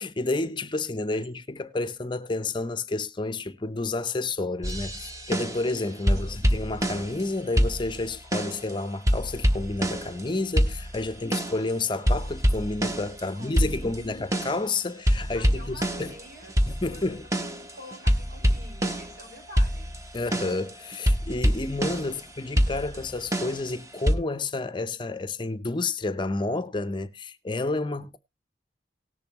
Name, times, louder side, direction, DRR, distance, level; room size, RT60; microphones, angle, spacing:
voice 1, 0.0-16.1 16.7-17.3 20.1-28.2, left 2 dB, 25° left, 0.6 m, -30 dB
sound 1, 4.6-5.7 6.1-7.3 7.6-8.7 9.1-10.3 10.6-11.7 12.1-14.7 15.1-19.2 19.6-22.2 22.6-24.1, equal, 15° right, 0.9 m, -26 dB
voice 2, 13.2-14.2 15.3-16.5 16.9-19.9, left 1 dB, 80° right, 6.1 m, -47 dB
18.5 x 7.0 x 2.9 m
head